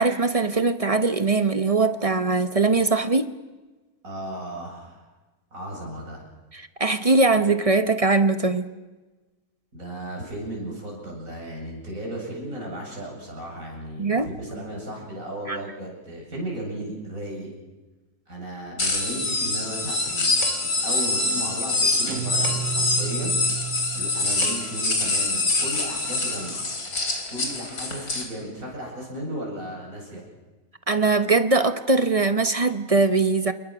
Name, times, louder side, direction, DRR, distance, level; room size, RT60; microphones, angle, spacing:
voice 1, 0.0-3.3 6.5-8.7 14.0-14.3 15.5-15.6 30.9-33.5, right 3 dB, 30° right, 0.8 m, -21 dB
voice 2, 4.0-5.1 5.5-6.2 9.7-17.5 18.3-20.3 20.6-23.4 23.9-26.6 27.3-30.2, right 1 dB, 65° right, 8.5 m, -35 dB
sound 1, 18.8-28.2, left 2 dB, 85° left, 4.2 m, -25 dB
Dishes pots and pans, 20.4-20.9 22.4-22.9 24.1-24.2 24.4-24.9, equal, 50° left, 3.7 m, -37 dB
Guitar, 22.1-24.7, right 8 dB, 90° right, 2.1 m, -32 dB
28.0 x 22.0 x 6.3 m
omnidirectional pair, 1.5 m